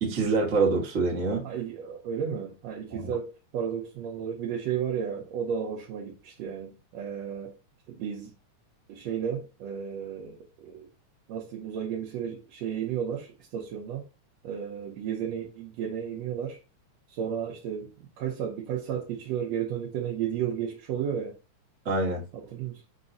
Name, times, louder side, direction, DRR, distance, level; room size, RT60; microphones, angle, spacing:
voice 1, 0.0-1.5 2.9-3.1 21.8-22.2, right 3 dB, 40° right, 1.0 m, -25 dB
voice 2, 1.4-7.5 7.9-8.3 8.9-10.9 11.3-14.1 14.4-16.6 17.1-21.4 22.3-22.8, right 8 dB, 70° right, 1.8 m, -33 dB
6.2 x 3.0 x 2.6 m
omnidirectional pair, 3.4 m